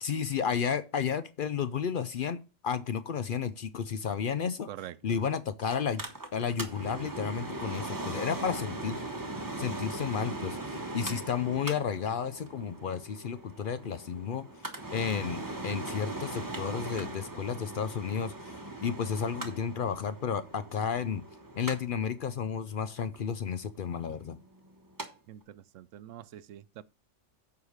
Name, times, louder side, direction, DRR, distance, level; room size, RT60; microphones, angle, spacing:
voice 1, 0.0-4.7 5.0-6.0 6.3-9.1 9.6-14.5 14.9-21.2 21.6-24.4, left 7 dB, 55° left, 0.6 m, -32 dB
voice 2, 4.7-5.3 25.3-26.8, right 12 dB, 85° right, 0.9 m, -45 dB
Mechanical fan, 5.7-25.1 25.4-25.5, right 2 dB, 15° right, 1.2 m, -40 dB
8.2 x 4.9 x 6.4 m
omnidirectional pair, 1.3 m